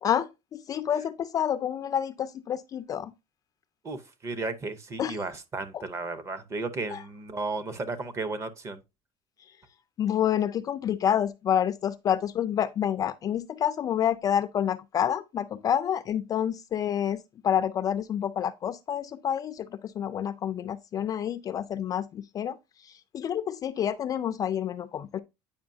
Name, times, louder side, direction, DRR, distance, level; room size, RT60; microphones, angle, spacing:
voice 1, 0.0-3.1 5.0-5.2 5.7-5.8 6.9-7.0 10.0-25.2, left 9 dB, 30° left, 0.3 m, -28 dB
voice 2, 3.8-8.8, right 3 dB, 25° right, 0.7 m, -34 dB
8.7 x 5.4 x 2.6 m
cardioid pair, 160°, 11 cm